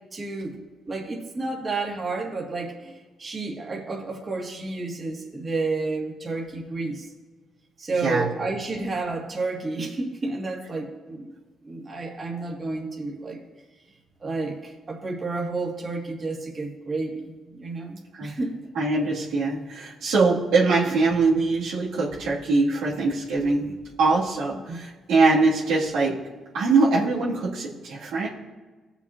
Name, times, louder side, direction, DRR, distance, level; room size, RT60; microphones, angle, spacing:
voice 1, 0.1-0.5 0.9-7.1 7.8-11.3 11.6-13.4 14.2-18.6 24.7-24.8, right 3 dB, 35° right, -2 dB, 2.1 m, -31 dB
voice 2, 18.7-26.2 26.5-28.3, right 3 dB, 85° right, -6 dB, 2.4 m, -22 dB
18.0 x 7.1 x 2.8 m, 1.3 s
cardioid pair, 90°, 0 cm